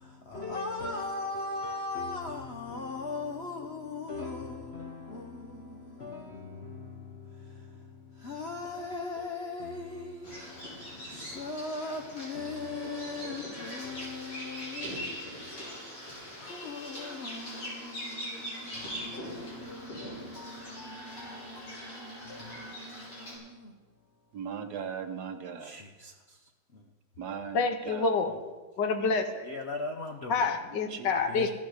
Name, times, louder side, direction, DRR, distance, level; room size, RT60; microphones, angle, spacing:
voice 1, 0.0-23.7 25.6-26.4 26.7-26.8 29.4-30.3 31.3-31.5, left 3 dB, 50° left, 0.8 m, -39 dB
Bird vocalization bird call bird song, 10.2-23.3, equal, 85° left, 6.2 m, -42 dB
voice 2, 24.3-25.8 27.2-27.6 27.9-28.1 30.9-31.2, right 7 dB, 60° right, 1.3 m, -38 dB
voice 3, 27.5-28.3 28.8-29.5 30.3-31.5, left 4 dB, 65° left, 1.6 m, -27 dB
15.0 x 9.4 x 6.4 m
omnidirectional pair, 2.1 m